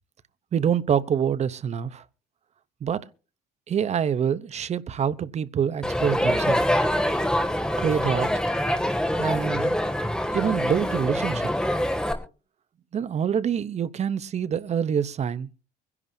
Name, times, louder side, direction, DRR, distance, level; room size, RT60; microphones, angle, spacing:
voice 1, 0.5-2.0 2.8-3.1 3.7-6.6 7.8-8.3 9.2-9.8 10.3-11.5 12.9-15.5, right 8 dB, 40° right, 0.9 m, -26 dB
Crowd, 5.8-12.1, equal, 5° left, 2.4 m, -25 dB
24.0 x 11.0 x 2.8 m
cardioid pair, 110°, 17 cm